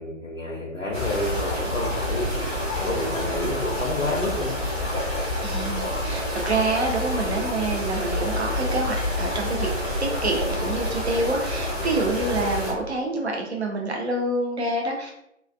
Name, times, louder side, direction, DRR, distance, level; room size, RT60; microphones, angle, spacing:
voice 1, 0.0-2.3 2.8-4.6, left 1 dB, 80° left, -4 dB, 0.9 m, -29 dB
sound 1, 0.9-12.7, left 1 dB, 10° left, 0.6 m, -28 dB
voice 2, 5.4-9.7 10.2-15.1, right 2 dB, 55° right, 0 dB, 0.8 m, -27 dB
3.1 x 2.4 x 2.5 m, 0.79 s
figure-of-eight pair, 140°, 39 cm